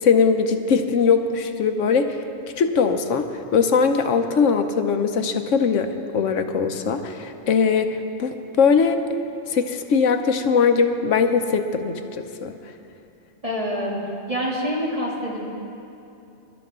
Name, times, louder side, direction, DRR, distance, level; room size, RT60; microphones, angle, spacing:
voice 1, 0.0-2.2 2.6-9.0 9.5-12.5, left 5 dB, 85° left, 7 dB, 1.1 m, -21 dB
voice 2, 13.4-14.0 14.3-15.4, equal, 30° right, -5 dB, 2.7 m, -26 dB
23.0 x 12.0 x 3.7 m, 2.8 s
omnidirectional pair, 1.2 m